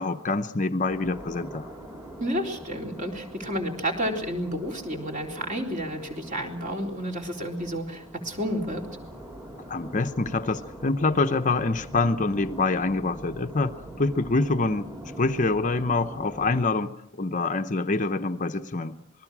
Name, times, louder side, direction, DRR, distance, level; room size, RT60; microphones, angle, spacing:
voice 1, 0.0-1.7 9.7-14.9 15.2-16.9 17.2-19.0, left 3 dB, 35° left, 9 dB, 0.8 m, -26 dB
sound 1, 0.9-16.6, right 1 dB, 15° right, 2.8 m, -43 dB
voice 2, 2.2-8.9, equal, 35° right, 2 dB, 3.8 m, -31 dB
27.0 x 20.5 x 6.1 m, 0.71 s
head